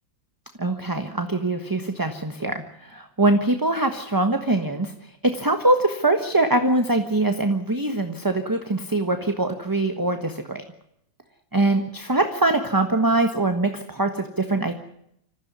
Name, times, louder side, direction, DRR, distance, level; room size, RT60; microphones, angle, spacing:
voice 1, 0.6-4.9 5.3-10.6 11.5-14.7, right 2 dB, 15° right, 6 dB, 1.2 m, -23 dB
26.0 x 15.0 x 9.6 m, 0.76 s
omnidirectional pair, 2.0 m